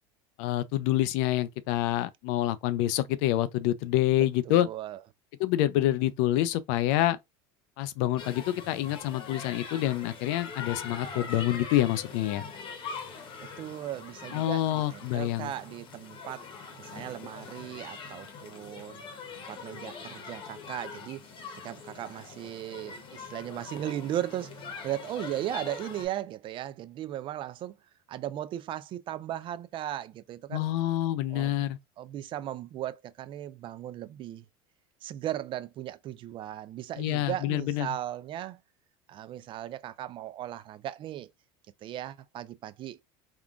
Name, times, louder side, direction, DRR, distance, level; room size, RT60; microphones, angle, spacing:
voice 1, 0.4-4.7 5.4-7.2 7.8-12.4 14.3-15.5 30.5-31.8 37.0-37.9, left 14 dB, 70° left, 0.4 m, -27 dB
voice 2, 4.5-5.0 13.6-16.5 16.8-19.0 19.3-21.3 21.6-27.8 28.1-30.7 31.3-31.7 32.0-34.4 35.0-38.6 39.1-41.3 41.8-43.0, right 12 dB, 40° right, 0.3 m, -37 dB
sound 1, 8.2-26.1, left 5 dB, 40° left, 0.9 m, -43 dB
3.6 x 2.3 x 2.4 m
supercardioid pair, 105°, 13 cm